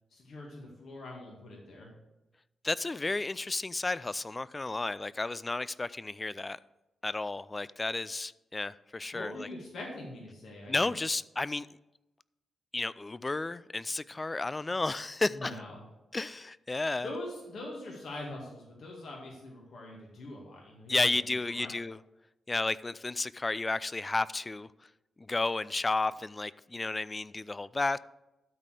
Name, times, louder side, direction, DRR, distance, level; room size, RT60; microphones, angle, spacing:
voice 1, 0.1-1.9 9.1-10.9 15.3-15.8 17.0-21.7, left 1 dB, 65° left, 2.2 m, -43 dB
voice 2, 2.6-6.6 7.0-9.5 10.7-11.7 12.7-15.5 16.1-17.1 20.9-22.0 22.5-24.7 25.3-28.0, left 3 dB, 25° left, 0.3 m, -32 dB
12.5 x 4.2 x 6.5 m
cardioid pair, 90°, 0 cm